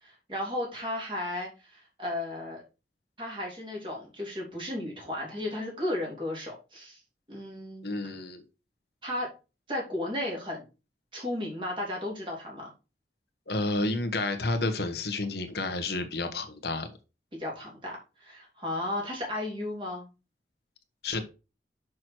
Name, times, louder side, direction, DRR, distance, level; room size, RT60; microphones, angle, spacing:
voice 1, 0.0-2.6 3.2-7.0 7.3-8.2 9.0-9.3 9.7-10.6 11.1-12.7 17.4-20.1, left 1 dB, 30° right, -1 dB, 3.2 m, -34 dB
voice 2, 7.8-8.4 13.5-16.9 21.0-21.2, left 2 dB, 70° left, 7 dB, 1.2 m, -30 dB
6.2 x 6.1 x 4.6 m, 0.30 s
head